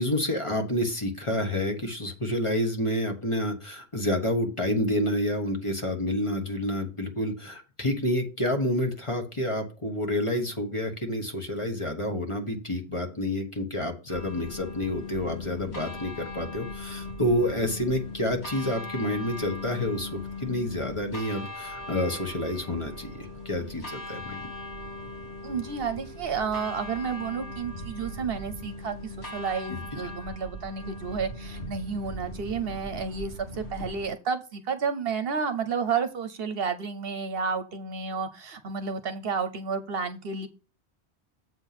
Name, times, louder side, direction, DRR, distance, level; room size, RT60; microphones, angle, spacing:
voice 1, 0.0-24.4 29.7-29.8, left 1 dB, 30° left, 4 dB, 1.3 m, -29 dB
sound 1, 14.1-34.1, left 1 dB, 80° left, 2.4 m, -39 dB
voice 2, 25.4-40.5, right 5 dB, 65° right, 9 dB, 0.9 m, -31 dB
7.8 x 4.4 x 5.8 m, 0.33 s
omnidirectional pair, 1.1 m